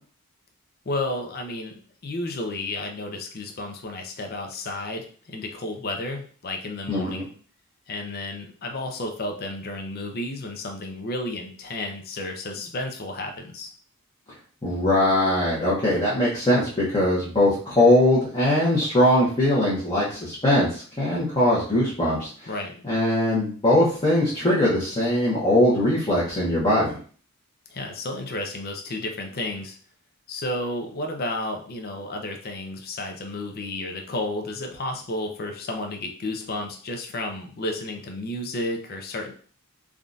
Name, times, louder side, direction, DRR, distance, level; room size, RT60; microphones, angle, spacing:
voice 1, 0.9-7.3 7.9-13.7 22.5-22.7 27.7-29.8 30.3-39.3, left 2 dB, 45° left, 3 dB, 0.5 m, -32 dB
voice 2, 6.9-7.2 14.6-22.3 22.8-27.0, left 1 dB, 20° left, -8 dB, 0.8 m, -21 dB
3.5 x 2.3 x 2.5 m, 0.44 s
head